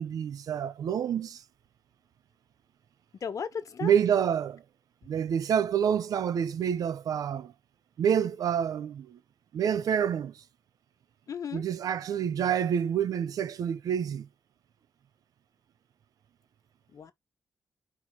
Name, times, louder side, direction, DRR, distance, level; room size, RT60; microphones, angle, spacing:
voice 1, 0.0-1.4 3.8-4.6 5.1-7.5 8.0-9.2 9.5-10.3 11.5-14.3, right 8 dB, 80° right, 0.6 m, -28 dB
voice 2, 3.2-3.9 11.3-11.6 16.9-17.1, left 7 dB, 65° left, 1.3 m, -35 dB
4.6 x 4.4 x 5.4 m
cardioid pair, 75°, 6 cm